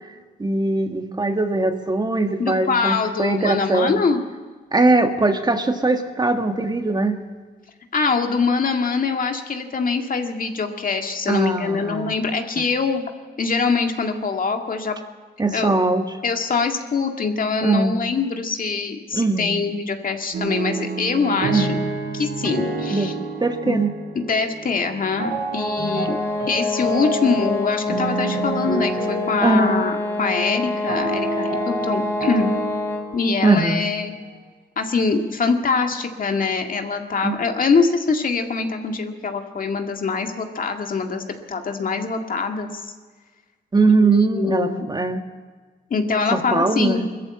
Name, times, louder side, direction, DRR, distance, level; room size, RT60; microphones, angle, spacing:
voice 1, 0.4-4.0 4.7-7.2 11.3-12.2 12.6-12.7 15.4-16.2 17.6-18.1 19.1-19.6 21.5-21.8 22.9-23.1 23.4-23.9 25.8-26.1 29.4-29.9 33.4-33.9 37.2-37.4 43.7-45.2 46.3-47.0, right 3 dB, 25° right, 6 dB, 1.5 m, -21 dB
voice 2, 2.4-4.2 7.9-13.1 13.4-15.0 15.5-15.8 16.2-21.8 22.1-23.1 23.7-23.8 24.2-26.2 26.5-32.5 33.1-34.1 34.8-42.8 44.0-44.9 45.9-47.1, left 4 dB, 50° left, 4 dB, 1.9 m, -23 dB
sound 1, 20.3-34.3, right 2 dB, 80° right, 6.6 m, -29 dB
sound 2, 25.5-33.2, left 2 dB, 15° left, 2.7 m, -27 dB
21.0 x 14.0 x 8.8 m, 1.4 s
cardioid pair, 90°, 18 cm